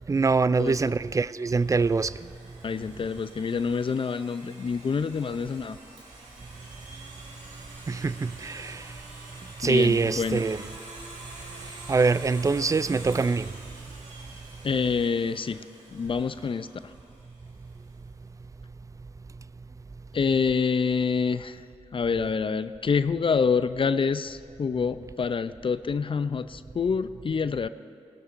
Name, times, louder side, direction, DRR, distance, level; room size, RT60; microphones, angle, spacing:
voice 1, 0.1-2.1 7.9-8.8 9.6-10.7 11.9-13.5, right 4 dB, 25° right, 0.3 m, -24 dB
Domestic sounds home sounds, 0.7-17.5, right 2 dB, 75° right, 2.4 m, -47 dB
voice 2, 2.6-5.8 9.6-10.4 14.6-15.6 15.9-16.7 20.1-21.6 21.9-27.7, left 5 dB, 45° left, 0.4 m, -27 dB
18.0 x 12.0 x 2.6 m
supercardioid pair, 45°, 12 cm